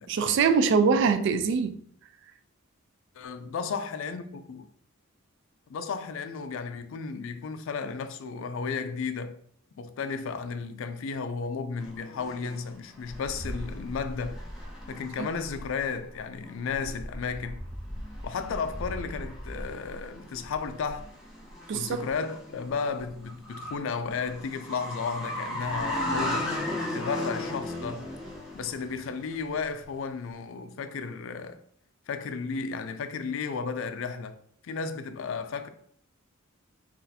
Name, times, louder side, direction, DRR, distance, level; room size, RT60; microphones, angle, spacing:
voice 1, 0.1-1.8 15.2-15.3 21.7-22.1, right 5 dB, 60° right, 0.3 m, -23 dB
voice 2, 3.2-4.7 5.7-9.4 9.7-14.4 14.9-17.6 18.2-21.1 21.7-26.5 26.9-28.1 28.5-31.6 32.1-34.3 34.6-35.7, left 5 dB, 65° left, 0.3 m, -33 dB
sound 1, 11.8-29.8, left 1 dB, ahead, 0.6 m, -37 dB
2.6 x 2.4 x 4.0 m
head